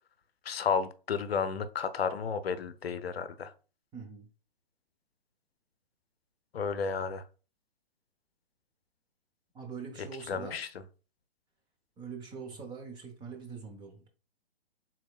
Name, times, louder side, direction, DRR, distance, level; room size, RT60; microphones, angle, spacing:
voice 1, 0.4-3.5 6.5-7.3 10.0-10.7, left 6 dB, 80° left, 0.6 m, -32 dB
voice 2, 3.9-4.3 9.5-10.6 12.0-14.1, right 5 dB, 15° right, 0.8 m, -43 dB
4.5 x 3.7 x 2.3 m
hypercardioid pair, 125°, 30 cm